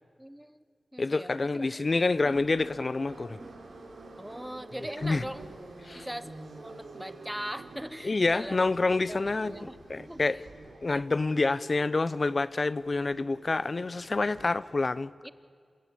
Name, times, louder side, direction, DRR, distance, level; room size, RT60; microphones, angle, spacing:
voice 1, 0.2-0.6 0.9-2.4 4.2-5.4 5.9-6.3 6.6-8.7 9.0-9.8 10.1-10.2 15.2-15.3, equal, 5° right, 0.7 m, -40 dB
voice 2, 1.0-3.4 5.0-5.2 5.8-6.1 8.0-10.4 10.8-15.1, left 3 dB, 40° left, 0.6 m, -28 dB
Subway metro underground, 2.2-14.7, right 3 dB, 90° right, 3.6 m, -48 dB
28.0 x 16.0 x 8.5 m
wide cardioid pair, 80°, 0 cm